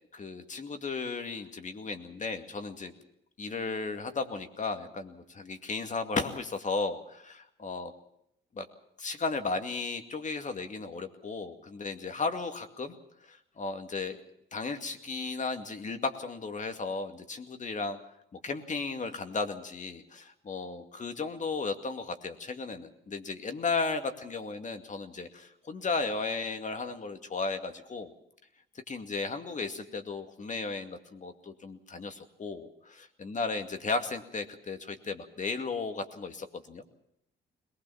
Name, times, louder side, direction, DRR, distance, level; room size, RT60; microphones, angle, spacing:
voice 1, 0.1-2.9 3.4-7.9 8.5-8.7 9.0-12.9 13.2-14.2 14.5-18.0 18.3-28.1 28.9-32.7 33.2-36.8, left 4 dB, 40° left, 7 dB, 2.3 m, -35 dB
21.5 x 20.0 x 7.2 m, 0.76 s
cardioid pair, 90°, 20 cm